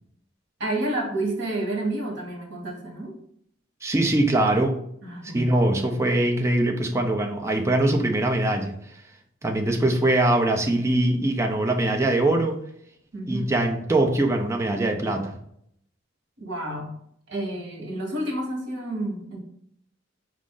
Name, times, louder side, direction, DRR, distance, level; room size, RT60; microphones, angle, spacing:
voice 1, 0.6-3.2 5.0-5.5 13.1-13.5 16.4-17.0 17.3-19.4, right 1 dB, 65° right, 1 dB, 1.2 m, -30 dB
voice 2, 3.8-4.8 5.3-8.8 9.4-12.6 13.3-15.3, right 1 dB, 15° right, 2 dB, 0.5 m, -22 dB
5.0 x 2.5 x 3.7 m, 0.69 s
head